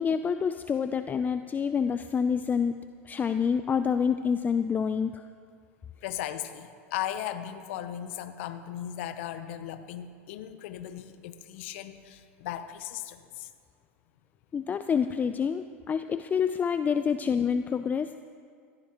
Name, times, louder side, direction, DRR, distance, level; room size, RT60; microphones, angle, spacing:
voice 1, 0.0-5.2 14.5-18.1, left 6 dB, 25° left, 10 dB, 0.5 m, -27 dB
voice 2, 6.0-13.5, left 11 dB, 65° left, 11 dB, 0.8 m, -37 dB
17.5 x 15.5 x 3.0 m, 2.1 s
hypercardioid pair, 95°, 7 cm